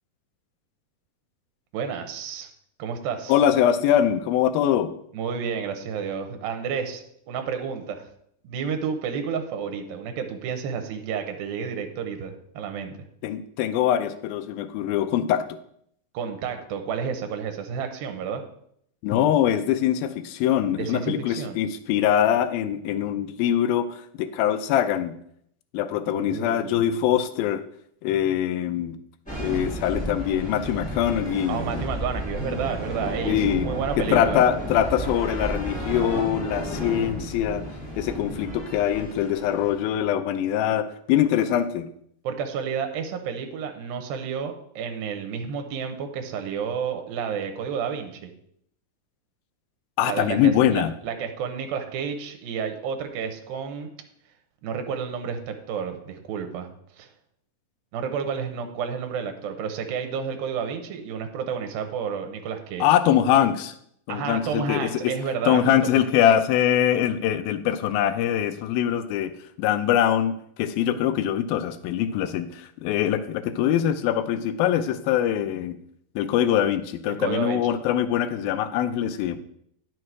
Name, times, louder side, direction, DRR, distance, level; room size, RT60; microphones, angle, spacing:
voice 1, 1.7-2.5 2.8-3.4 5.1-8.1 8.4-13.0 16.1-18.4 20.8-21.6 26.1-26.8 31.5-34.4 42.2-48.3 50.1-53.9 54.6-56.7 57.0-57.1 57.9-62.9 64.1-66.1 77.1-77.6, right 6 dB, 80° right, 6 dB, 2.7 m, -31 dB
voice 2, 3.3-4.9 13.2-15.4 19.0-25.2 25.7-27.6 28.0-29.0 29.4-31.6 33.3-33.7 34.0-37.6 38.0-41.9 50.0-50.9 62.8-63.7 64.1-65.1 65.5-69.3 69.6-75.8 76.2-79.4, left 10 dB, 80° left, 10 dB, 2.4 m, -23 dB
sound 1, 29.3-40.0, equal, ahead, 2.9 m, -32 dB
9.6 x 6.4 x 4.7 m, 0.69 s
omnidirectional pair, 4.3 m